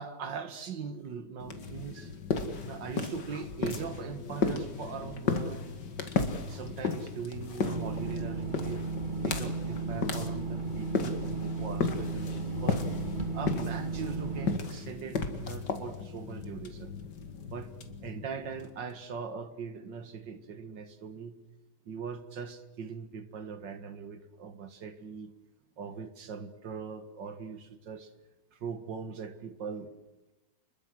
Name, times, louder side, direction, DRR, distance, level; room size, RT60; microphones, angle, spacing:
voice 1, 0.0-2.1 2.6-5.6 6.5-8.8 9.2-12.8 13.3-16.9 17.5-17.7 18.0-21.3 21.9-25.3 25.8-28.1 28.5-29.9, right 6 dB, 80° right, 11 dB, 2.1 m, -40 dB
sound 1, 1.4-18.9, left 4 dB, 70° left, 2.6 m, -35 dB
sound 2, 7.6-14.6, right 4 dB, 25° right, 2.4 m, -35 dB
27.5 x 21.5 x 7.7 m, 1.0 s
omnidirectional pair, 1.9 m